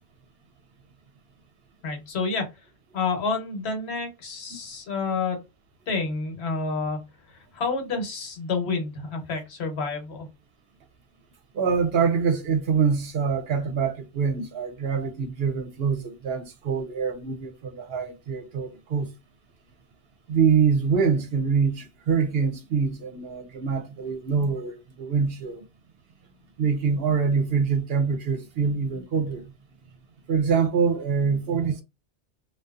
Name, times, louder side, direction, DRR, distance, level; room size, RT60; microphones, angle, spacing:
voice 1, 1.8-2.5 2.9-5.4 5.9-7.0 7.5-10.3, left 4 dB, 70° left, 1.1 m, -29 dB
voice 2, 11.5-19.1 20.3-25.6 26.6-29.4 30.3-31.8, right 6 dB, 65° right, 0.8 m, -25 dB
2.6 x 2.2 x 2.3 m
omnidirectional pair, 1.2 m